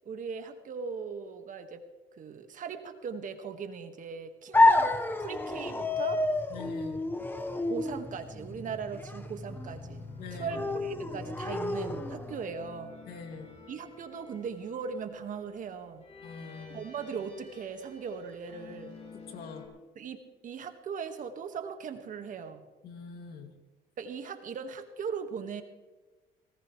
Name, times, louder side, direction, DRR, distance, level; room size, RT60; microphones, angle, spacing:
voice 1, 0.0-1.8 2.2-6.3 7.7-10.0 10.3-12.9 13.7-16.0 16.7-19.0 19.9-20.2 20.4-22.7 24.0-25.6, right 6 dB, 50° right, 7 dB, 1.8 m, -39 dB
sound 1, 4.5-12.5, left 2 dB, 10° left, 1.2 m, -29 dB
voice 2, 6.5-7.0 10.2-10.6 13.1-13.5 16.2-16.9 19.3-19.7 22.8-23.6, left 5 dB, 65° left, 4 dB, 2.6 m, -44 dB
sound 2, 9.6-19.7, left 3 dB, 40° left, 5.8 m, -51 dB
20.0 x 18.5 x 3.3 m, 1.2 s
cardioid pair, 110°, 17 cm